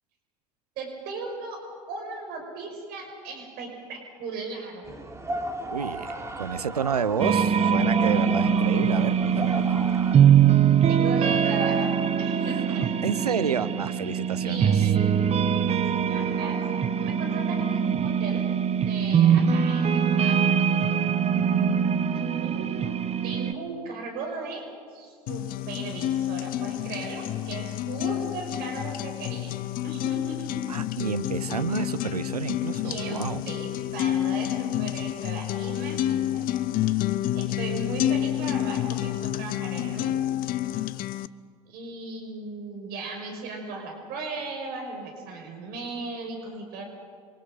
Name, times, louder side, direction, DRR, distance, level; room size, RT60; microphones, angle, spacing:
voice 1, 0.8-5.0 10.8-12.9 14.4-18.5 18.8-20.5 22.1-22.8 23.2-29.5 29.8-30.6 32.8-36.7 37.3-40.2 41.7-46.8, right 3 dB, 55° right, 2 dB, 5.8 m, -37 dB
sound 1, 4.8-10.2, right 2 dB, 15° right, 3.6 m, -35 dB
voice 2, 5.6-9.9 12.7-14.8 21.4-21.8 30.7-33.4, right 6 dB, 90° right, 13 dB, 0.8 m, -30 dB
sound 2, 7.2-23.5, right 7 dB, 35° right, 1.3 m, -22 dB
sound 3, 25.3-41.3, left 13 dB, 50° left, 0.8 m, -29 dB
28.0 x 24.5 x 5.2 m, 2.1 s
figure-of-eight pair, 70°, 19 cm